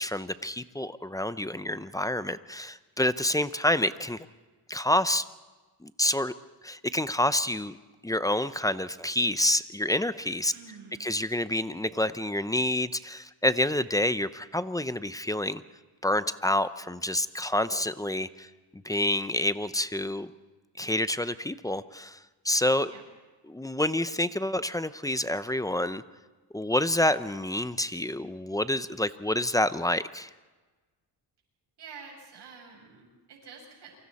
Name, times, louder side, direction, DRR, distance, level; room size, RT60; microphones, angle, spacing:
voice 1, 0.0-4.2 4.7-5.2 5.8-6.3 6.6-7.8 8.0-10.5 11.0-15.6 16.0-18.5 18.8-20.3 20.8-22.2 22.4-22.9 23.5-26.0 26.5-30.3, left 1 dB, 10° left, 13 dB, 0.6 m, -28 dB
voice 2, 10.5-11.1 22.8-23.0 31.8-34.0, right 5 dB, 70° right, 0 dB, 7.5 m, -48 dB
28.0 x 24.5 x 4.2 m, 1.3 s
cardioid pair, 110°, 43 cm